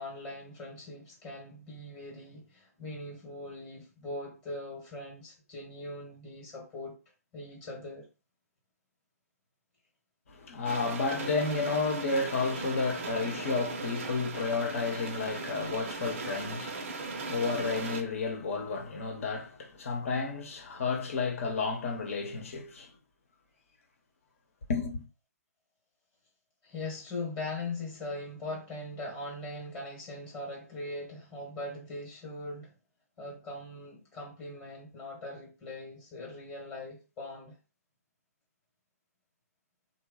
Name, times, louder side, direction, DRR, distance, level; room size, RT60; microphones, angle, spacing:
voice 1, 0.0-7.0 7.3-8.1 26.6-32.7 33.2-37.6, left 2 dB, 25° left, 1.1 m, -41 dB
voice 2, 10.3-22.9 24.7-25.0, left 4 dB, 55° left, 1.0 m, -32 dB
sound 1, 10.6-18.0, right 3 dB, 50° right, 0.6 m, -38 dB
3.1 x 2.2 x 3.7 m
figure-of-eight pair, 135°, 9 cm